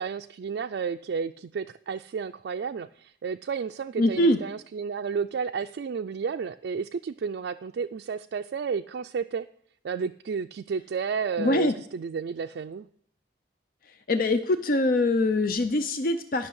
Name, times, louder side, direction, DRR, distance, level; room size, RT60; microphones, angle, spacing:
voice 1, 0.0-9.5 9.8-12.9, right 6 dB, 70° right, 6 dB, 0.3 m, -32 dB
voice 2, 4.0-4.4 11.4-11.8 14.1-16.5, left 2 dB, 50° left, 10 dB, 0.5 m, -23 dB
11.5 x 5.9 x 6.4 m, 0.64 s
head